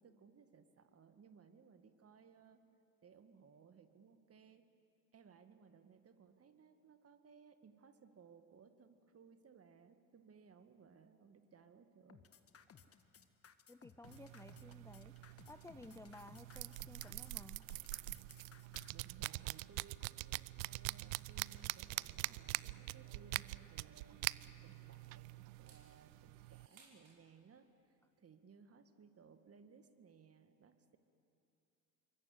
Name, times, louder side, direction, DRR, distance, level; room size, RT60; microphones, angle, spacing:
voice 1, 0.0-2.6 3.0-4.6 5.1-12.3 18.9-24.2 24.6-31.0, right 6 dB, 35° right, 8 dB, 2.1 m, -63 dB
sound 1, 12.1-18.9, left 7 dB, 35° left, 1.7 m, -61 dB
voice 2, 13.7-15.2 15.5-17.7, left 2 dB, 5° left, 11 dB, 0.6 m, -55 dB
sound 2, 14.0-26.7, right 20 dB, 75° right, 0.5 m, -45 dB
sound 3, 21.8-25.1 25.5-27.2, right 4 dB, 50° right, 6.2 m, -67 dB
27.0 x 23.5 x 8.2 m, 2.7 s
hypercardioid pair, 65°, 42 cm